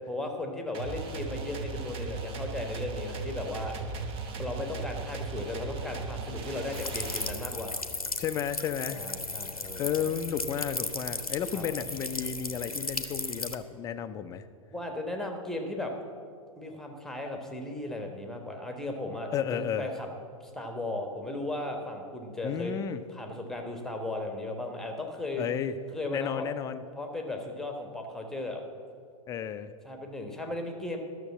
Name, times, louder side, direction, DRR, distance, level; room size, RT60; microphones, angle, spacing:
voice 1, 0.0-3.8 4.4-7.8 8.9-10.2 11.5-11.6 14.7-16.0 16.6-20.1 20.5-22.7 23.1-25.4 25.9-26.5 27.0-28.6 29.8-31.0, left 2 dB, ahead, 3 dB, 1.2 m, -36 dB
sound 1, 0.7-7.3, right 4 dB, 30° right, 1.1 m, -37 dB
sound 2, 6.7-13.5, left 3 dB, 85° left, 0.8 m, -36 dB
voice 2, 8.2-9.0 9.8-14.4 19.3-19.9 22.4-23.0 25.4-25.8 26.1-26.8 29.3-29.7, left 8 dB, 20° left, 11 dB, 0.5 m, -32 dB
12.5 x 6.5 x 7.3 m, 2.3 s
figure-of-eight pair, 100°, 18 cm